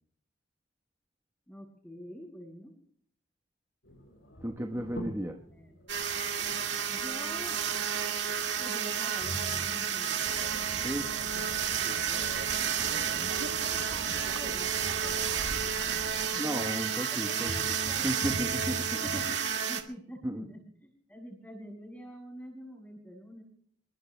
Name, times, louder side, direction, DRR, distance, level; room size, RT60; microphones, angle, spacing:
voice 1, 1.5-2.7 5.3-5.8 6.9-7.6 8.6-10.3 11.8-12.5 13.5-15.3 16.2-18.3 19.0-23.4, equal, 10° left, -1 dB, 7.8 m, -47 dB
sound 1, 3.8-19.3, equal, 85° left, 7.5 m, -47 dB
voice 2, 4.4-5.4 10.8-11.1 12.8-13.3 16.3-17.5 18.0-19.0 20.2-20.5, equal, 15° right, 2 dB, 1.1 m, -34 dB
sound 2, 5.9-19.8, right 8 dB, 70° right, 2.0 m, -31 dB
sound 3, 10.2-16.3, right 3 dB, 90° right, 0.9 m, -42 dB
27.5 x 22.5 x 2.2 m, 0.62 s
head